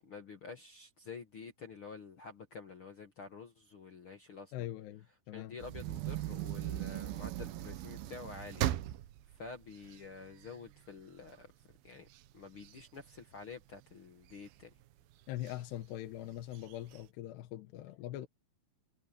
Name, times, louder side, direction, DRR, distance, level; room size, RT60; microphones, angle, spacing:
voice 1, 0.0-4.5 5.3-8.6 9.4-11.5 11.8-12.1 12.3-14.7, left 5 dB, 60° left, 1.4 m, -49 dB
voice 2, 4.5-5.6 15.3-18.3, left 13 dB, 85° left, 3.3 m, -42 dB
sound 1, 5.6-10.8 11.3-11.4 11.7-13.8 14.3-14.8 15.4-15.6 15.8-15.9 16.4-17.0, right 14 dB, 75° right, 2.5 m, -39 dB
omnidirectional pair, 4.7 m